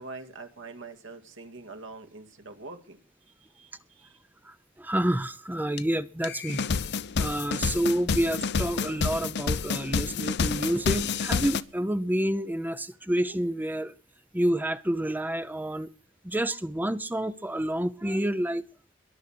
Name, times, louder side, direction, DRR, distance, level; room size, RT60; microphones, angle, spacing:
voice 1, 0.0-3.0 3.3-4.2, right 3 dB, 70° right, 2.1 m, -44 dB
voice 2, 4.4-6.7 7.2-13.9 14.3-15.9 16.2-18.6, right 1 dB, 10° right, 0.6 m, -28 dB
sound 1, 5.8-5.9 6.2-11.6, left 5 dB, 55° left, 0.7 m, -29 dB
21.5 x 7.2 x 6.1 m
head